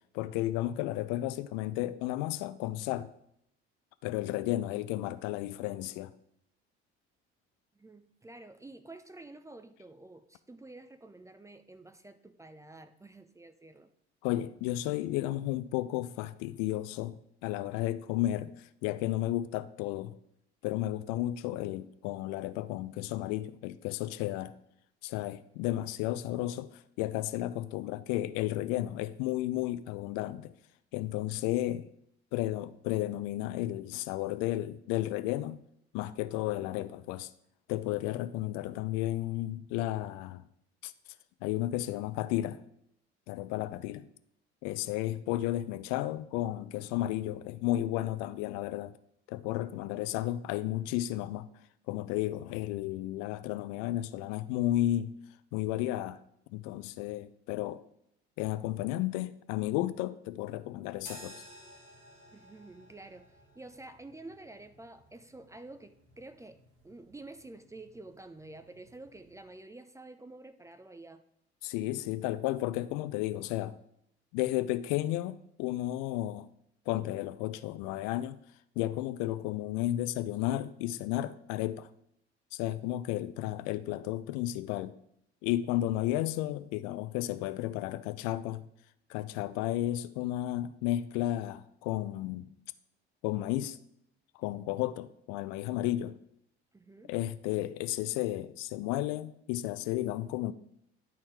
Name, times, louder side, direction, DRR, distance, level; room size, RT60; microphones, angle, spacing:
voice 1, 0.1-3.1 4.0-6.1 14.2-17.2 17.4-20.1 20.6-24.5 25.0-30.5 30.9-31.9 32.3-35.6 35.9-37.3 37.7-40.4 40.8-40.9 41.4-42.6 43.3-44.1 44.6-48.9 49.3-51.5 51.9-55.1 55.5-56.2 56.5-57.8 58.4-61.4 71.6-73.8 74.3-76.5 76.9-78.4 78.8-81.9 82.5-84.9 85.4-88.6 89.1-92.5 93.2-93.8 94.4-96.1 97.1-100.5, left 14 dB, 55° left, 0.5 m, -33 dB
voice 2, 7.8-13.9 62.3-71.2 96.7-97.1, right 2 dB, 10° right, 0.4 m, -50 dB
sound 1, 61.0-69.5, right 1 dB, 70° right, 2.1 m, -56 dB
11.0 x 4.3 x 4.6 m
figure-of-eight pair, 55°, 33 cm